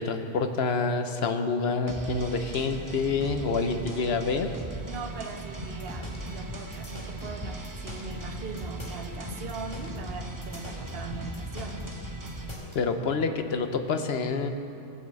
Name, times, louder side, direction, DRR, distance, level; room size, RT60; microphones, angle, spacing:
voice 1, 0.0-4.5 12.7-14.5, left 4 dB, 80° left, 7 dB, 1.1 m, -27 dB
sound 1, 1.9-12.5, right 1 dB, 20° right, 0.9 m, -39 dB
voice 2, 4.8-11.8, right 5 dB, 70° right, 6 dB, 1.2 m, -40 dB
sound 2, 5.6-12.8, left 1 dB, 25° left, 2.2 m, -41 dB
18.5 x 6.1 x 7.6 m, 2.8 s
omnidirectional pair, 1.0 m